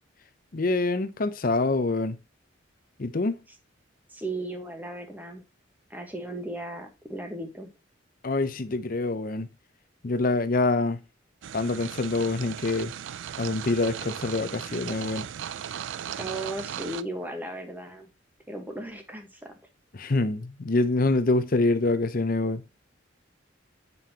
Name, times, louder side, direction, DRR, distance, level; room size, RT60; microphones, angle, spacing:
voice 1, 0.5-2.2 3.0-3.4 8.2-9.5 10.0-11.0 11.5-12.9 13.4-15.3 19.9-22.6, left 2 dB, 45° left, 0.6 m, -25 dB
voice 2, 4.1-5.4 5.9-7.7 16.2-18.1 18.5-19.5, right 1 dB, 10° right, 1.2 m, -36 dB
sound 1, 11.4-17.0, right 9 dB, 70° right, 0.3 m, -37 dB
7.6 x 5.4 x 2.8 m
head